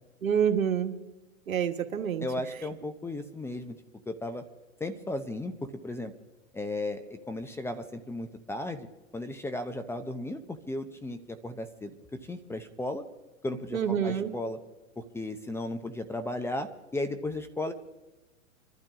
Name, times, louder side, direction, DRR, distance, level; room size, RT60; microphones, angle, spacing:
voice 1, 0.2-1.0 1.5-2.2 13.7-14.3, right 8 dB, 85° right, 7 dB, 1.5 m, -27 dB
voice 2, 2.2-3.8 4.1-4.4 4.8-6.1 6.5-8.9 9.1-13.0 13.4-14.6 15.0-17.7, left 1 dB, 5° left, 8 dB, 0.7 m, -35 dB
25.0 x 12.0 x 3.7 m, 1.1 s
hypercardioid pair, 125°, 40 cm